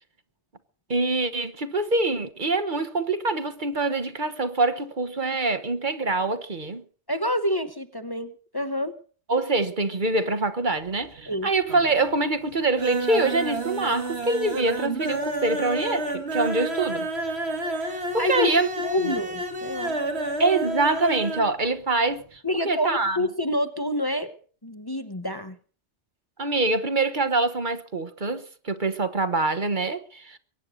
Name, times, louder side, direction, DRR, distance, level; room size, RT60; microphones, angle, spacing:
voice 1, 0.9-6.8 9.3-17.1 17.8-18.7 19.0-19.1 20.4-23.3 26.4-30.4, right 3 dB, 45° right, 1.2 m, -25 dB
voice 2, 7.1-9.0 11.3-11.5 18.2-18.5 18.8-20.0 22.4-24.3 24.6-25.6, left 1 dB, 20° left, 0.9 m, -28 dB
sound 1, 10.7-11.3 11.6-12.2 12.5-21.5 21.8-21.9 22.2-22.3, right 2 dB, 70° right, 2.3 m, -30 dB
23.0 x 9.6 x 6.4 m
omnidirectional pair, 1.1 m